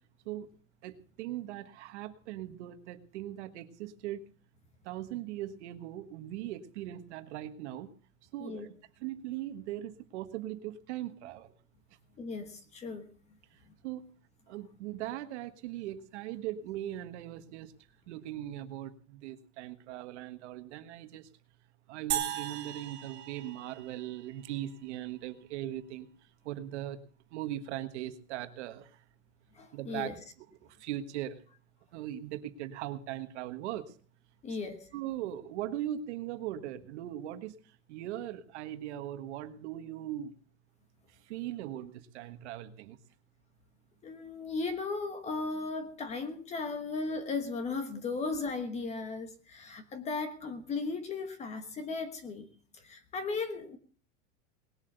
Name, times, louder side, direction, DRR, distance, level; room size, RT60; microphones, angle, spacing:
voice 1, 0.8-4.2 4.8-7.9 8.3-8.7 9.0-11.5 13.8-14.0 14.5-17.7 18.1-21.3 21.9-26.1 26.4-27.0 27.3-29.0 29.7-31.4 31.9-33.9 34.9-37.5 37.9-40.3 41.1-43.0, right 12 dB, 55° right, 10 dB, 1.5 m, -39 dB
voice 2, 12.2-13.0 29.6-30.1 34.4-34.8 44.0-52.5 52.8-53.8, left 4 dB, 15° left, 10 dB, 1.3 m, -36 dB
sound 1, 22.1-24.5, right 12 dB, 25° right, 1.8 m, -37 dB
20.0 x 7.9 x 7.9 m, 0.43 s
supercardioid pair, 170°, 40 cm